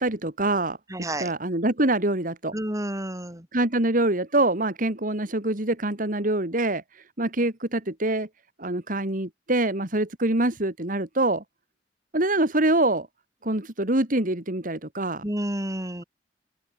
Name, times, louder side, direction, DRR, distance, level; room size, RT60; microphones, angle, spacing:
voice 1, 0.0-0.8 1.2-2.5 3.5-6.8 7.2-8.3 8.6-11.4 12.1-13.1 13.4-15.2, right 2 dB, 50° right, 2.9 m, -25 dB
voice 2, 0.9-1.3 2.5-3.5 15.2-16.0, right 1 dB, 20° right, 5.1 m, -30 dB
open air
head